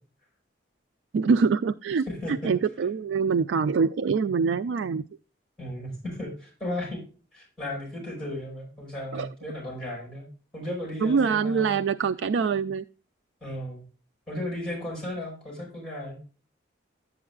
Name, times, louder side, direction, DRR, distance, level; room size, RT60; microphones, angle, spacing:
voice 1, 1.1-5.0 9.1-9.3 11.0-12.8, right 5 dB, 80° right, 12 dB, 0.3 m, -24 dB
voice 2, 2.1-2.5 5.6-7.0 7.3-10.3 10.5-11.8 13.4-13.9 14.3-16.2, left 1 dB, 5° left, -2 dB, 5.4 m, -35 dB
11.0 x 8.7 x 2.4 m, 0.36 s
head